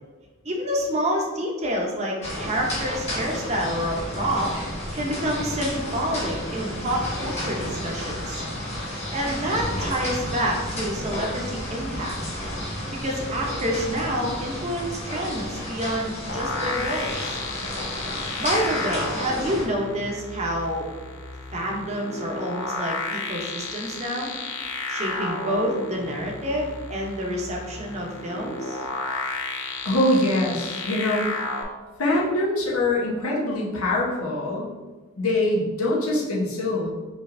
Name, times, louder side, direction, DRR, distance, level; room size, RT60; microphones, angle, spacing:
voice 1, 0.4-4.5 4.9-8.4 9.1-12.2 13.0-17.4 18.4-20.9 21.5-24.3 24.9-28.8, equal, 30° right, 0 dB, 0.7 m, -28 dB
sound 1, 2.2-19.6, equal, 30° left, 1.4 m, -32 dB
sound 2, 16.3-31.6, left 3 dB, 55° left, 0.6 m, -32 dB
voice 2, 29.8-31.3 32.0-34.7 35.2-36.9, left 1 dB, 90° left, -3 dB, 1.0 m, -23 dB
5.2 x 3.2 x 2.6 m, 1.3 s
head